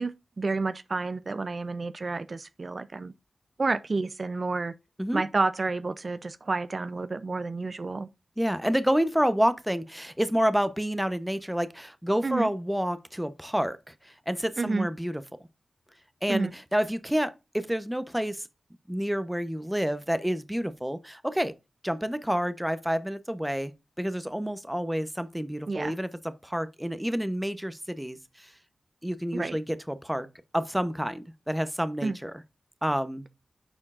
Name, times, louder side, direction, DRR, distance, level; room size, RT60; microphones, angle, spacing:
voice 1, 0.0-3.1 3.6-4.7 5.1-8.1 12.2-12.5 14.6-14.9 16.3-16.5 25.7-25.9 29.3-29.6 32.0-32.2, right 3 dB, 50° right, 0.4 m, -30 dB
voice 2, 8.4-15.2 16.2-18.4 18.9-21.5 21.8-23.7 24.0-26.1 26.4-28.5 29.0-30.3 30.5-32.3 32.8-33.2, equal, 5° right, 0.8 m, -29 dB
9.7 x 4.4 x 2.4 m
cardioid pair, 60°, 0 cm